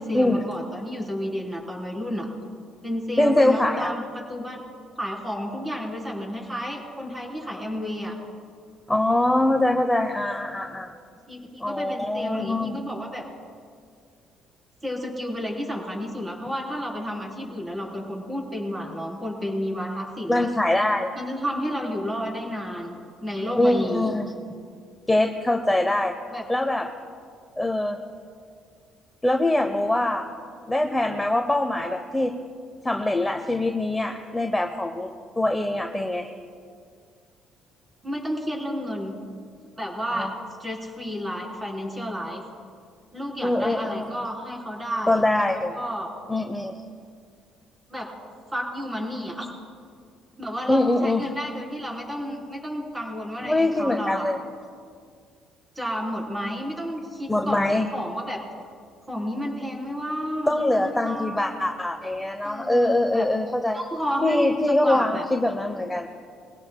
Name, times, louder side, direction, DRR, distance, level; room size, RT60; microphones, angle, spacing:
voice 1, 0.0-2.3 2.8-4.6 5.0-8.1 11.3-13.3 14.8-20.5 21.1-24.1 26.3-26.5 38.0-39.2 39.8-40.3 40.6-42.4 43.1-45.2 45.7-46.1 47.9-48.1 48.5-49.5 50.4-54.3 55.8-58.4 59.1-61.4 62.4-63.3 63.7-65.2, equal, 15° right, -2 dB, 3.8 m, -31 dB
voice 2, 3.2-3.9 8.9-10.9 11.6-12.7 20.3-21.1 23.6-24.3 25.1-26.1 26.5-26.9 27.6-28.0 29.2-30.3 30.7-32.4 32.8-35.1 35.4-36.3 40.1-40.3 43.4-44.0 45.1-45.8 46.3-46.8 50.7-51.3 53.4-54.4 57.3-57.9 60.5-63.8 64.2-66.1, left 1 dB, 5° left, 4 dB, 0.8 m, -23 dB
22.5 x 17.0 x 2.3 m, 2.2 s
cardioid pair, 115°, 0 cm